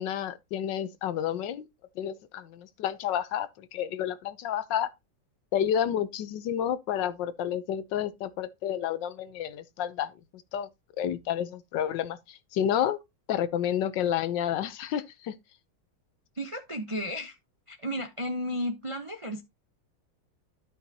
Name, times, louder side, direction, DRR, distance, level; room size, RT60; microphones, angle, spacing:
voice 1, 0.0-1.7 2.0-4.9 5.5-10.7 11.0-13.0 13.3-15.3, left 10 dB, 65° left, 1.3 m, -30 dB
voice 2, 16.4-17.4 17.7-19.4, equal, 35° right, 0.5 m, -33 dB
12.5 x 5.7 x 2.8 m
omnidirectional pair, 2.3 m